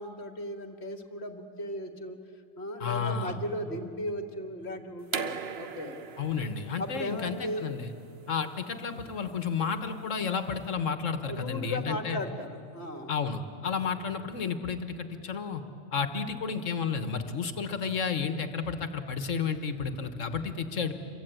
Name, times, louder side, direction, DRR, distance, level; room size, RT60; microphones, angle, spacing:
voice 1, 0.0-2.2 2.6-6.0 6.8-7.7 11.3-13.1, left 1 dB, 55° left, 6 dB, 1.9 m, -36 dB
voice 2, 2.8-3.4 6.2-7.9 8.3-12.2 13.1-15.6 15.9-20.9, left 5 dB, 80° left, 9 dB, 1.6 m, -32 dB
sound 1, 5.1-10.7, right 6 dB, 55° right, 1.2 m, -40 dB
27.0 x 23.5 x 9.0 m, 2.6 s
omnidirectional pair, 1.3 m